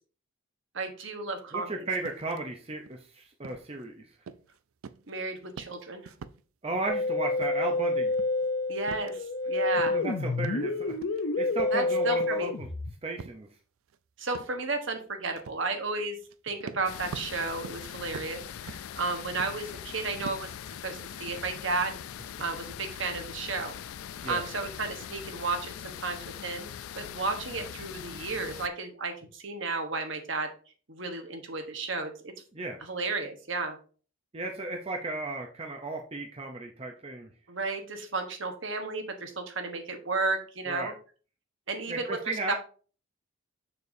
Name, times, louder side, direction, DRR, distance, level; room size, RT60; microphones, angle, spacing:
voice 1, 0.7-1.9 5.1-6.1 8.7-10.0 11.7-12.5 14.2-16.2 16.4-20.5 20.8-22.0 22.4-23.8 24.2-26.7 27.0-30.5 30.9-32.3 32.8-33.8 37.5-40.9 41.7-42.2 42.5-42.6, right 3 dB, 60° right, 5 dB, 1.2 m, -33 dB
voice 2, 1.5-4.1 6.6-8.1 9.9-11.0 11.4-12.7 13.0-13.5 24.2-24.4 32.5-32.8 34.3-37.3 40.7-40.9 41.9-42.5, right 2 dB, 30° right, 2 dB, 0.6 m, -35 dB
sound 1, 2.0-2.4 2.7-3.0 3.4-3.8 4.3-4.6 4.8-5.2 5.4-6.4 6.7-7.1 7.4-7.8 8.1-9.4 9.8-10.1 10.4-11.2 11.5-12.5 13.2-13.4 13.9-14.0 14.3-14.6 15.3-15.6 16.2-16.3 16.6-19.8 20.2-20.6 21.0-21.9, right 5 dB, 80° right, 0.4 m, -45 dB
Musical instrument, 6.9-12.9, left 3 dB, 60° left, 0.7 m, -28 dB
sound 2, 16.8-28.7, left 9 dB, 90° left, 0.4 m, -42 dB
6.8 x 6.7 x 2.7 m, 0.40 s
head